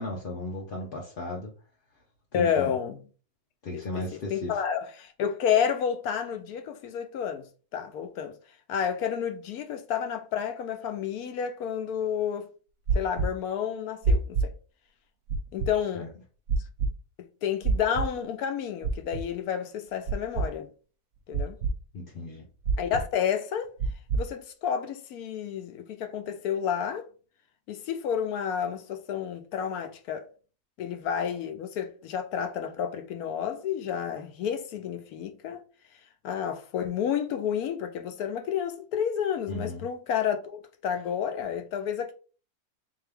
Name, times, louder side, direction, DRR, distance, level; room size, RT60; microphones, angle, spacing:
voice 1, 0.0-1.5 2.3-2.7 3.6-4.6 15.9-16.1 21.9-22.4 39.5-39.8, left 2 dB, 55° left, 0.6 m, -35 dB
voice 2, 2.3-3.0 3.7-7.4 7.7-8.3 8.7-12.5 12.9-14.5 15.5-16.1 17.4-20.7 21.3-21.6 22.8-23.7 24.1-27.1 27.7-30.3 30.8-35.6 36.2-42.1, left 8 dB, 75° left, 1.1 m, -30 dB
sound 1, 12.9-13.3 14.0-14.5 15.3-15.7 16.5-16.9 17.6-18.1 18.8-19.2 20.1-20.5 21.3-21.7 22.6-23.0 23.8-24.2, right 3 dB, 60° right, 0.9 m, -25 dB
3.8 x 2.7 x 3.4 m
omnidirectional pair, 1.6 m